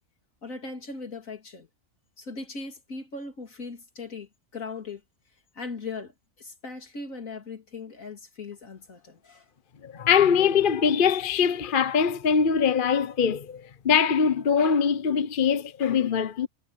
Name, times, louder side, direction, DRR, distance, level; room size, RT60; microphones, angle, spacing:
voice 1, 0.4-1.7 2.2-5.0 5.5-9.5, left 4 dB, 70° left, 3.4 m, -39 dB
voice 2, 9.8-16.5, left 7 dB, 45° left, 0.9 m, -22 dB
omnidirectional pair, 1.5 m